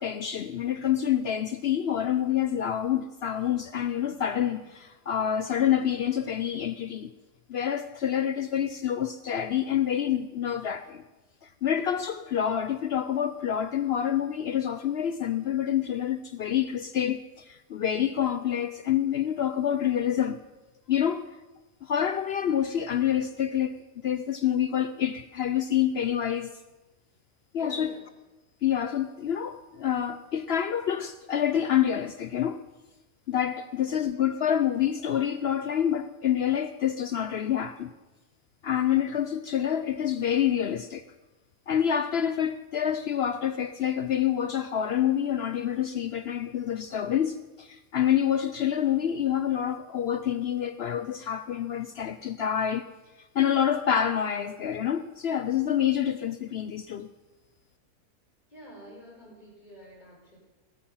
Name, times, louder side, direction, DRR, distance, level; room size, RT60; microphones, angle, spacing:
voice 1, 0.0-7.1 7.5-11.0 11.4-20.4 20.9-21.3 21.8-23.7 24.0-26.6 27.5-27.9 28.6-32.6 33.3-37.9 38.6-41.0 41.7-52.9 53.3-57.1, left 9 dB, 65° left, 0.6 m, -27 dB
voice 2, 27.5-28.1 33.7-34.0 58.5-60.4, left 1 dB, 30° left, 5.0 m, -48 dB
19.5 x 8.7 x 5.7 m
omnidirectional pair, 1.6 m